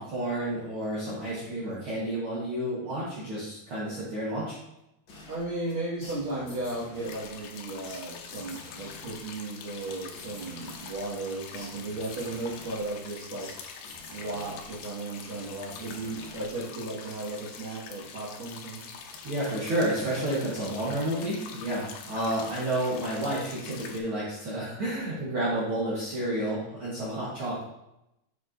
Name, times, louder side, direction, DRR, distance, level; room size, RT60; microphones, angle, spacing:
voice 1, 0.0-4.6 19.2-27.6, right 1 dB, 85° right, -7 dB, 1.1 m, -30 dB
sound 1, 5.1-17.2, left 2 dB, 60° left, 1.2 m, -50 dB
voice 2, 5.3-13.5 14.1-18.9, right 2 dB, 40° right, -10 dB, 2.1 m, -35 dB
sound 2, 7.0-24.0, left 6 dB, 85° left, 2.7 m, -44 dB
7.3 x 6.2 x 2.6 m, 0.87 s
omnidirectional pair, 4.5 m